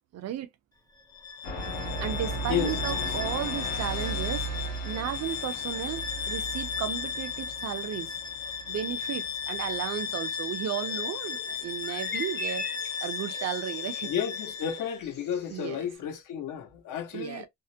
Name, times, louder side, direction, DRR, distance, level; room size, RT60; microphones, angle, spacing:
voice 1, 0.1-0.5 1.8-4.5 4.9-8.1 8.7-12.6 13.0-14.1 15.5-15.9 17.1-17.5, right 11 dB, 50° right, 0.4 m, -34 dB
Bowed string instrument, 1.1-15.0, left 7 dB, 10° left, 0.6 m, -35 dB
sound 1, 1.4-10.0, right 2 dB, 85° left, 1.3 m, -36 dB
sound 2, 10.8-15.9, left 2 dB, 30° left, 1.0 m, -42 dB
voice 2, 14.0-17.5, left 9 dB, 65° left, 0.9 m, -32 dB
3.5 x 2.1 x 2.7 m
cardioid pair, 135°, 33 cm